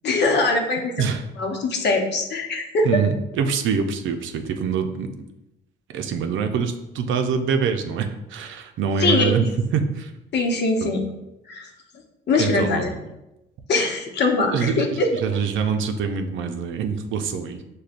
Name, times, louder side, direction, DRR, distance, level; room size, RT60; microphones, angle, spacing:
voice 1, 0.0-1.0 1.4-3.0 9.0-9.3 10.3-11.0 11.5-11.7 12.3-12.9 13.7-15.1, left 3 dB, 60° left, 2 dB, 0.8 m, -22 dB
voice 2, 2.8-5.1 5.9-9.5 9.7-10.1 10.8-11.0 12.4-13.0 14.5-17.6, right 6 dB, 75° right, 6 dB, 0.5 m, -24 dB
6.5 x 2.2 x 2.5 m, 0.91 s
cardioid pair, 90°, 20 cm